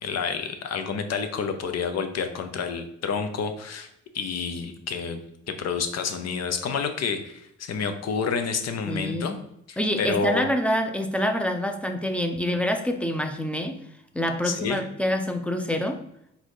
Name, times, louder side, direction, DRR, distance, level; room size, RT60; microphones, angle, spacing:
voice 1, 0.0-3.9 4.1-5.2 5.5-9.4 9.7-10.5 14.4-14.8, left 5 dB, 55° left, 8 dB, 0.7 m, -29 dB
voice 2, 8.9-9.3 9.8-13.8 14.1-16.0, equal, 5° left, 5 dB, 0.5 m, -26 dB
4.0 x 2.7 x 4.8 m, 0.75 s
cardioid pair, 90°, 30 cm